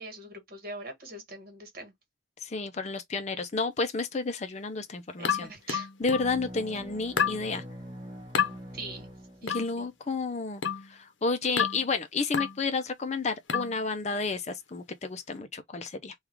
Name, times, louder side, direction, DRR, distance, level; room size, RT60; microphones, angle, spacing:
voice 1, 0.0-1.9 5.2-5.9 8.7-9.1 9.4-9.9, right 2 dB, 45° right, 1.5 m, -42 dB
voice 2, 2.4-5.5 6.0-7.6 9.4-10.6 10.9-16.1, left 4 dB, 35° left, 0.5 m, -31 dB
sound 1, 5.2-6.4 7.2-7.4 8.3-8.6 9.5-9.7 10.6-10.9 11.6-11.9 12.3-12.6 13.5-13.8, left 7 dB, 70° left, 0.7 m, -29 dB
sound 2, 6.0-9.9, equal, 25° right, 1.0 m, -44 dB
3.5 x 2.4 x 4.5 m
head